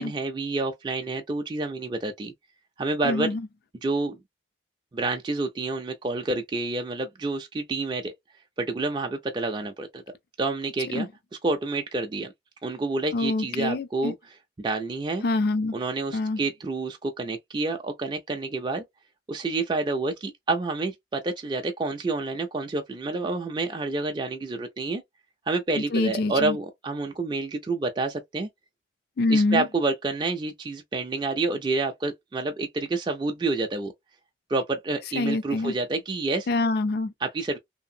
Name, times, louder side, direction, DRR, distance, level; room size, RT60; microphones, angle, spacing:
voice 1, 0.0-2.3 2.8-3.3 3.8-4.2 4.9-8.1 8.6-10.0 10.4-11.1 11.4-12.3 12.6-14.1 14.6-15.2 15.7-18.8 19.3-25.0 25.5-28.5 29.3-33.9 34.5-36.5 37.2-37.6, right 3 dB, 25° right, 0.3 m, -28 dB
voice 2, 3.0-3.5 10.9-11.1 13.1-14.1 15.2-15.7 16.1-16.4 25.8-26.6 29.2-29.7 35.1-35.8 36.5-37.1, left 2 dB, 55° left, 0.3 m, -25 dB
2.7 x 2.5 x 2.6 m
head